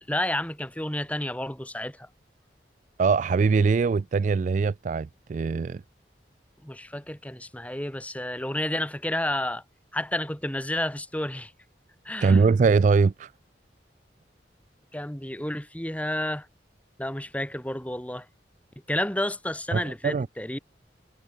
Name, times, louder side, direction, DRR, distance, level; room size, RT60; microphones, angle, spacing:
voice 1, 0.1-2.1 6.6-9.6 9.9-11.5 12.1-12.5 14.9-16.5 17.0-18.3 18.9-20.6, left 1 dB, 10° left, 3.4 m, -30 dB
voice 2, 3.0-5.8 12.2-13.3 19.7-20.3, right 4 dB, 45° right, 0.3 m, -22 dB
head